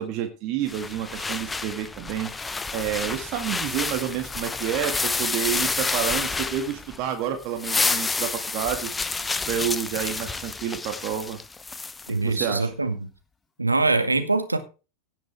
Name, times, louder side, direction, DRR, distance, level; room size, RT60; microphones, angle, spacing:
voice 1, 0.0-8.9 9.5-11.4 12.1-12.7, right 10 dB, 40° right, 6 dB, 1.9 m, -29 dB
sound 1, 0.7-7.1 7.4-12.1, left 3 dB, 10° left, 0.7 m, -29 dB
voice 2, 12.1-13.0 13.6-14.6, right 3 dB, 80° right, 7 dB, 2.0 m, -23 dB
17.5 x 7.3 x 3.4 m, 0.31 s
figure-of-eight pair, 90°, 0 cm